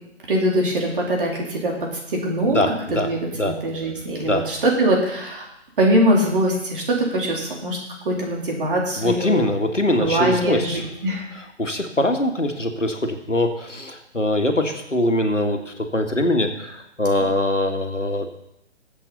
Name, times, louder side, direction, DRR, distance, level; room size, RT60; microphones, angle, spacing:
voice 1, 0.3-2.6 2.9-5.5 5.8-7.8 8.0-9.4 10.0-11.3 17.2-17.3, right 1 dB, 45° right, -1 dB, 3.8 m, -22 dB
voice 2, 2.5-3.5 4.3-4.4 9.0-10.8 11.6-18.3, left 1 dB, 85° left, 4 dB, 2.0 m, -22 dB
19.5 x 8.3 x 4.1 m, 0.81 s
figure-of-eight pair, 135°, 36 cm